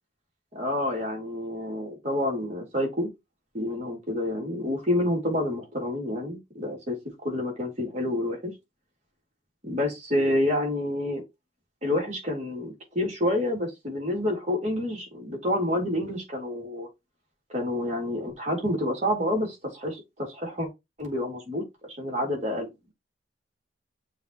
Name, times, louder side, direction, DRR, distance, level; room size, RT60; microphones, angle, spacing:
voice 1, 0.5-3.1 3.5-7.0 7.2-8.4 9.6-11.2 11.8-16.9 17.5-20.7 21.0-21.6 22.0-22.7, left 1 dB, 40° right, 3.7 m, -28 dB
6.9 x 3.3 x 4.4 m
head